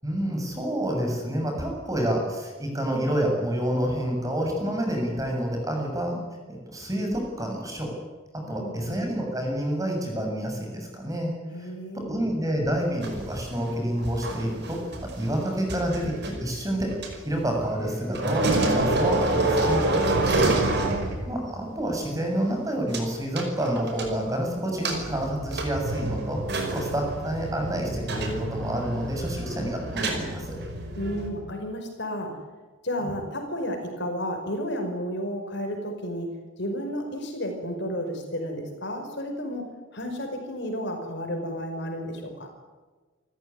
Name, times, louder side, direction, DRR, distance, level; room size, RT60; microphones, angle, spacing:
voice 1, 0.0-6.2 6.5-7.9 8.3-16.1 16.4-17.0 17.2-19.8 21.3-26.4 26.7-30.6, right 1 dB, 15° right, 2 dB, 7.2 m, -28 dB
voice 2, 8.4-9.0 11.5-12.2 19.9-20.6 31.0-32.4 32.8-36.3 36.6-42.5, equal, 55° left, 4 dB, 5.3 m, -32 dB
sound 1, 13.0-17.9 18.1-21.5 21.8-21.9 22.9-23.0 23.4-24.4 24.8-31.3, right 2 dB, 50° right, 5.4 m, -28 dB
29.0 x 15.0 x 9.8 m, 1.3 s
head